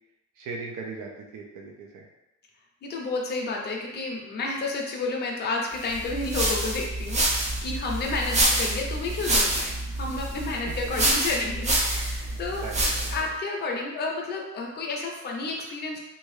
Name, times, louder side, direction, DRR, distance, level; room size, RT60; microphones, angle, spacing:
voice 1, 0.4-2.1 12.6-13.3, right 4 dB, 85° right, 0 dB, 0.6 m, -39 dB
voice 2, 2.8-12.7 13.1-16.0, left 3 dB, 35° left, -1 dB, 0.5 m, -31 dB
sound 1, 5.9-13.3, right 1 dB, 25° right, 0.4 m, -27 dB
2.7 x 2.2 x 3.1 m, 0.97 s
cardioid pair, 175°, 30 cm